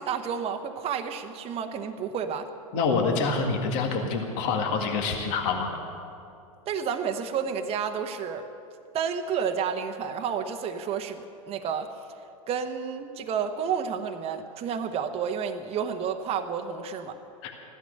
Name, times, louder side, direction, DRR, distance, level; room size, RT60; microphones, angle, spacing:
voice 1, 0.0-2.5 6.7-8.4 8.9-11.9 12.5-17.2, right 7 dB, 35° right, 5 dB, 1.0 m, -30 dB
voice 2, 2.7-5.7 17.4-17.5, left 4 dB, 50° left, 2 dB, 2.1 m, -26 dB
15.5 x 12.5 x 6.5 m, 2.6 s
hypercardioid pair, 100°, 18 cm